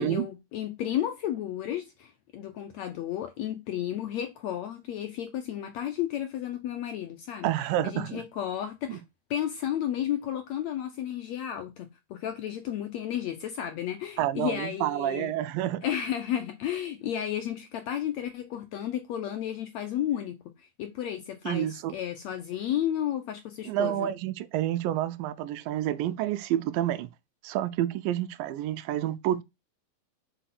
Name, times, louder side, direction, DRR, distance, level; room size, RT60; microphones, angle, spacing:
voice 1, 0.0-7.5 7.8-9.0 9.3-15.3 15.8-24.1, left 10 dB, 75° left, 1.6 m, -33 dB
voice 2, 7.4-8.2 8.9-9.0 14.2-15.8 21.5-21.9 23.6-27.1 27.4-29.4, right 12 dB, 85° right, 2.3 m, -29 dB
6.8 x 5.1 x 5.9 m
omnidirectional pair, 4.0 m